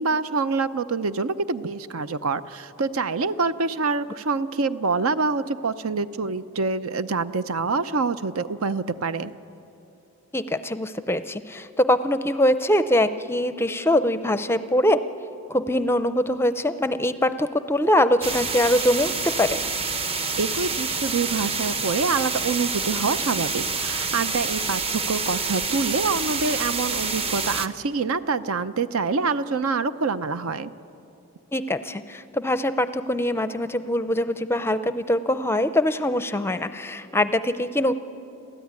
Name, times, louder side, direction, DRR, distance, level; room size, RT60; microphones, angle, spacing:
voice 1, 0.0-9.3 20.4-30.7, right 4 dB, 75° right, 13 dB, 0.7 m, -26 dB
voice 2, 10.3-15.0 15.5-19.6 31.5-37.9, left 1 dB, 10° left, 12 dB, 0.5 m, -23 dB
sound 1, 18.2-27.7, right 4 dB, 25° right, 0.8 m, -27 dB
29.5 x 13.5 x 9.6 m, 3.0 s
head